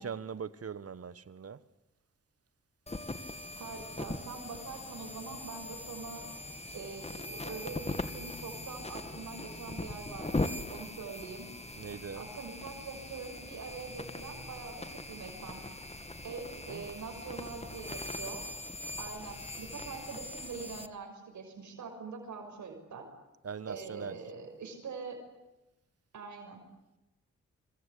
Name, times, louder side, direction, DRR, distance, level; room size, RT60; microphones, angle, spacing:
voice 1, 0.0-1.6 11.7-12.3 16.7-17.0 23.4-24.2, right 6 dB, 55° right, 1.5 m, -41 dB
sound 1, 2.9-20.9, left 2 dB, 20° left, 2.2 m, -40 dB
voice 2, 3.5-6.2 6.7-11.5 12.1-15.6 16.2-18.4 19.0-23.1 23.7-25.2 26.1-26.6, right 5 dB, 85° right, 6.3 m, -44 dB
26.5 x 25.5 x 8.6 m
cardioid pair, 70°, 29 cm